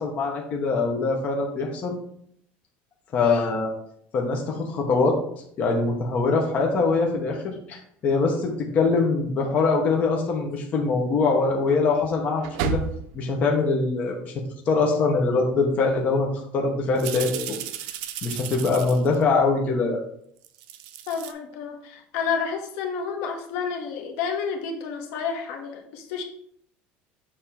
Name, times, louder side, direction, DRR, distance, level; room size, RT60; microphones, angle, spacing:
voice 1, 0.0-2.0 3.1-3.7 4.1-5.2 5.6-12.8 13.1-14.3 14.7-17.6 18.2-20.0, left 4 dB, 30° left, 0 dB, 1.0 m, -23 dB
sound 1, 9.0-9.1 10.6-10.7 12.0-13.2 15.2-15.3 15.8-16.0 17.0-19.2 20.4-21.3, right 8 dB, 80° right, 0.6 m, -33 dB
voice 2, 21.1-26.2, left 6 dB, 65° left, 3 dB, 1.1 m, -30 dB
6.8 x 2.9 x 5.7 m, 0.67 s
cardioid pair, 175°, 5 cm